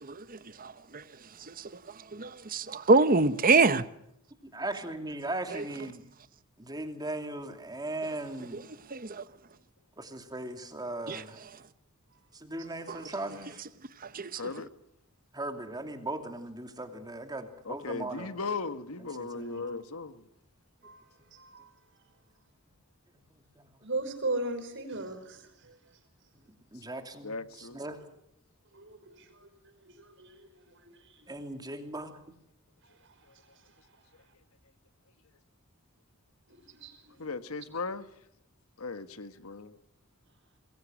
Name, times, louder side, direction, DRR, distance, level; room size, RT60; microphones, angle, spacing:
voice 1, 0.0-1.0 1.5-1.7 2.1-3.8 8.5-8.6 8.9-9.2 11.1-11.2 14.1-14.4, right 3 dB, 40° right, 1.0 m, -25 dB
voice 2, 4.4-6.0 6.6-8.6 10.0-11.4 12.3-13.6 15.3-18.3 19.0-19.6 23.3-23.7 26.7-28.0 31.3-32.2, right 2 dB, 20° right, 2.8 m, -38 dB
voice 3, 14.3-14.7 17.6-20.2 26.7-26.8 27.2-27.8 37.2-38.1 38.8-39.8, left 4 dB, 85° left, 1.5 m, -37 dB
voice 4, 19.3-19.7 20.8-21.0 21.3-21.7 23.8-25.7 28.7-29.5 29.9-30.5 30.8-31.3 32.8-33.2 36.5-37.3, right 2 dB, 60° right, 5.3 m, -38 dB
27.0 x 21.5 x 6.3 m
head